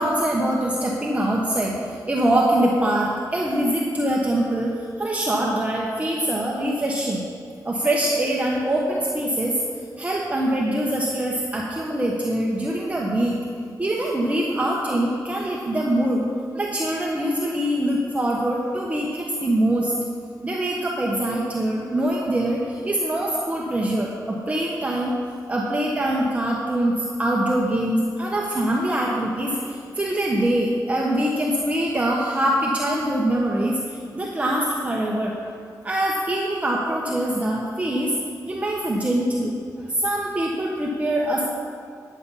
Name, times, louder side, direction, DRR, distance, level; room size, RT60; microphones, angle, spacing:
voice 1, 0.0-7.2 7.6-9.5 10.0-13.4 13.8-16.2 16.5-19.9 20.4-25.1 25.5-35.3 35.8-38.1 38.5-41.4, right 1 dB, 20° right, -3 dB, 1.0 m, -23 dB
10.5 x 8.2 x 5.6 m, 2.3 s
wide cardioid pair, 130°, 7 cm